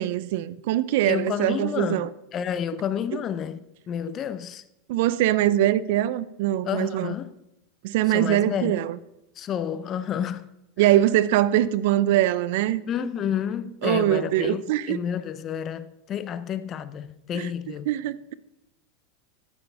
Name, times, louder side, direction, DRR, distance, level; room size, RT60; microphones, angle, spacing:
voice 1, 0.0-2.1 4.9-7.1 7.8-9.0 10.8-12.8 13.8-15.0 17.3-17.5 17.9-18.3, right 13 dB, 65° right, 0.5 m, -22 dB
voice 2, 1.0-3.6 3.9-4.6 6.6-7.3 8.1-8.8 9.4-10.5 10.8-10.9 12.9-17.9, left 8 dB, 35° left, 0.5 m, -30 dB
14.5 x 6.2 x 3.5 m
supercardioid pair, 120°, 0 cm